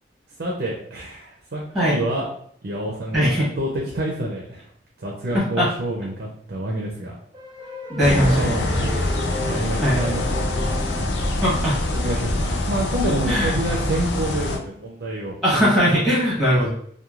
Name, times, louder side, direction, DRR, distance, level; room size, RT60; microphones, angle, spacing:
voice 1, 0.4-1.6 1.9-2.3 2.6-4.6 5.0-7.1 8.0-9.1 9.4-10.5 11.3-11.4 11.9-15.4 15.7-15.9, right 1 dB, 65° right, -2 dB, 0.6 m, -28 dB
voice 2, 3.1-3.5 5.3-5.7 7.9-8.6 9.8-10.0 11.4-11.8 13.3-13.5 15.4-16.7, equal, ahead, -8 dB, 1.0 m, -19 dB
sound 1, 7.3-11.4, equal, 25° right, 0.4 m, -34 dB
sound 2, 8.0-14.6, left 2 dB, 75° left, 0.4 m, -25 dB
3.0 x 2.3 x 2.4 m, 0.62 s
head